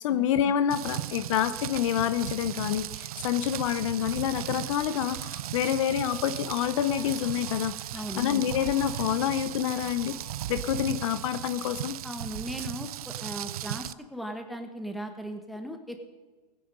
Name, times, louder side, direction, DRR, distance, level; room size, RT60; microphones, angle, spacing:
voice 1, 0.0-7.8 8.2-10.1 10.5-12.0, left 10 dB, 50° left, 12 dB, 0.8 m, -27 dB
Rain, 0.7-13.9, right 13 dB, 60° right, 0.4 m, -37 dB
sound 1, 6.1-10.9, left 3 dB, 85° left, 5.3 m, -52 dB
voice 2, 7.9-8.2 12.0-16.1, equal, ahead, 4 dB, 1.4 m, -38 dB
18.0 x 10.0 x 5.5 m, 1.4 s
hypercardioid pair, 135°, 21 cm